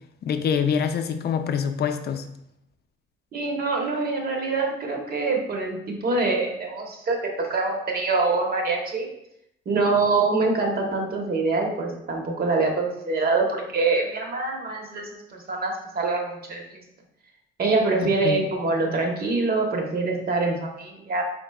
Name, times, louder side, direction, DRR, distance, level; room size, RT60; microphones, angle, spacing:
voice 1, 0.2-2.3 18.0-18.4, left 7 dB, 55° left, 8 dB, 0.5 m, -25 dB
voice 2, 3.3-9.1 9.7-16.6 17.6-21.2, right 3 dB, 50° right, 1 dB, 1.0 m, -25 dB
4.4 x 3.7 x 2.3 m, 0.80 s
cardioid pair, 90°, 20 cm